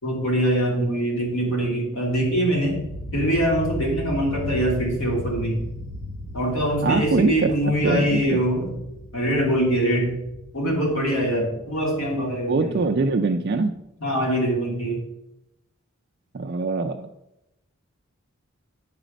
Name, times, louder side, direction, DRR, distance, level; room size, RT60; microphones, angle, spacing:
voice 1, 0.0-2.8 3.1-5.6 6.3-8.7 9.1-10.2 10.5-12.9 14.0-15.0, right 1 dB, 75° left, -2 dB, 2.7 m, -23 dB
sound 1, 2.2-13.7, left 1 dB, 50° left, 0.8 m, -36 dB
voice 2, 6.8-7.5 7.8-8.4 12.5-13.8 16.3-17.1, right 3 dB, 50° right, 4 dB, 0.4 m, -23 dB
9.2 x 5.0 x 5.2 m, 0.90 s
head